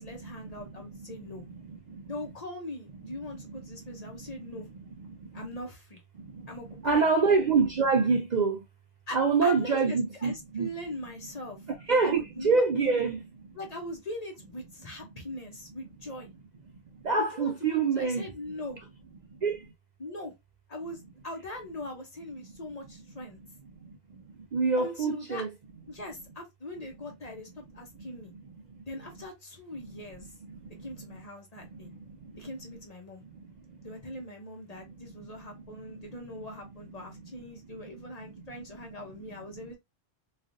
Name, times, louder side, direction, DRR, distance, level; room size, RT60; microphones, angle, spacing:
voice 1, 0.0-1.4 2.1-4.7 5.3-6.0 6.5-7.1 9.1-11.6 12.0-13.0 13.5-16.3 17.2-18.8 20.0-20.3 20.7-23.4 24.8-25.4 25.9-27.5 27.7-28.3 28.9-30.3 30.8-31.9 32.3-33.2 33.8-39.7, left 1 dB, 40° left, 0.8 m, -41 dB
voice 2, 1.5-2.1 4.3-4.6 5.1-5.4 6.2-8.6 9.1-10.7 11.9-13.2 17.0-18.3 19.4-19.7 23.8-24.2 24.5-25.5 27.9-28.1 30.5-30.9 31.7-32.1 32.4-32.5 33.3-33.8 35.0-35.3 35.9-36.0 38.2-38.4, right 4 dB, 55° right, 0.5 m, -27 dB
3.2 x 2.4 x 2.5 m
omnidirectional pair, 1.1 m